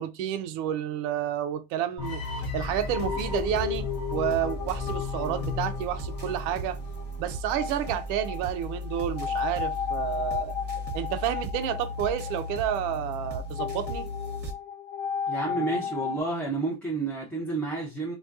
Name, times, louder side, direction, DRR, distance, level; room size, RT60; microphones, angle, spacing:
voice 1, 0.0-2.2 2.5-3.9 4.1-6.8 7.2-10.5 10.9-14.1, right 10 dB, 50° right, 0.5 m, -30 dB
sound 1, 2.0-7.1, left 8 dB, 35° left, 0.8 m, -37 dB
sound 2, 2.0-14.5, right 1 dB, 25° right, 0.9 m, -36 dB
sound 3, 3.0-16.2, left 7 dB, 70° left, 0.6 m, -35 dB
voice 2, 15.3-18.1, right 3 dB, 5° left, 0.5 m, -30 dB
2.3 x 2.2 x 2.4 m
hypercardioid pair, 90°, 42 cm